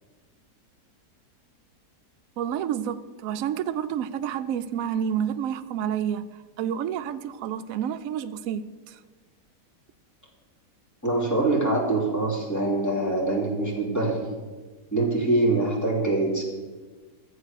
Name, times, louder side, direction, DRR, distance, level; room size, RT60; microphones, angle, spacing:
voice 1, 2.4-6.2 6.6-9.0, right 9 dB, 70° right, 0.8 m, -29 dB
voice 2, 11.0-14.3 14.9-16.4, right 2 dB, 10° left, 2.7 m, -24 dB
13.0 x 7.9 x 6.4 m
omnidirectional pair, 1.8 m